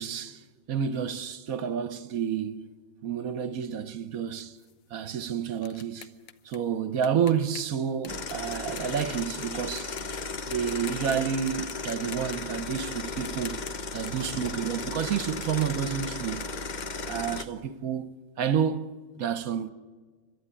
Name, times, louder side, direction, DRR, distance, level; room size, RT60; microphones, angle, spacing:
voice 1, 0.0-2.7 3.0-4.6 4.9-6.1 6.4-10.0 10.5-13.6 13.9-16.5 17.0-18.1 18.4-19.7, right 8 dB, 60° right, 1.2 m, -30 dB
sound 1, 4.6-9.5 9.8-10.2 10.5-11.2 11.5-14.5 14.8-17.8, left 10 dB, 85° left, 1.6 m, -48 dB
sound 2, 8.1-17.5, left 4 dB, 55° left, 0.5 m, -35 dB
30.0 x 12.5 x 9.0 m
omnidirectional pair, 1.9 m